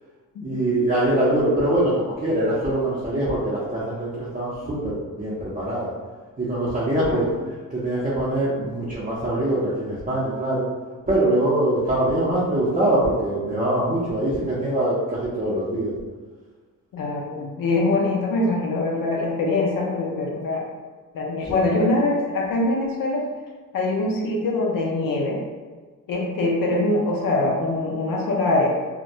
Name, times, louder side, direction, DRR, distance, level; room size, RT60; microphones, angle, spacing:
voice 1, 0.4-5.9 6.4-7.3 7.7-10.6 11.1-15.9 21.4-21.6, right 1 dB, 25° right, -9 dB, 0.5 m, -23 dB
voice 2, 7.1-7.4 16.9-20.7 21.1-23.3 23.7-25.4 26.1-28.7, left 2 dB, 75° left, -2 dB, 0.5 m, -23 dB
2.2 x 2.1 x 2.7 m, 1.4 s
cardioid pair, 105°, 34 cm